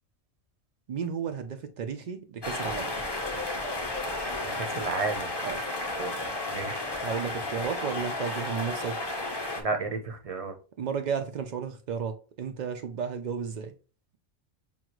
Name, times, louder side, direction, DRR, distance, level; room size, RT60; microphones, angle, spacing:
voice 1, 0.9-2.9 5.4-5.6 7.0-9.0 10.8-13.7, right 6 dB, 85° right, 0.3 m, -33 dB
sound 1, 2.4-9.6, left 2 dB, 30° left, 0.5 m, -33 dB
voice 2, 4.6-5.3 5.9-6.1 6.5-6.8 9.6-10.5, right 4 dB, 40° right, 0.6 m, -32 dB
5.5 x 2.3 x 3.0 m
omnidirectional pair, 1.3 m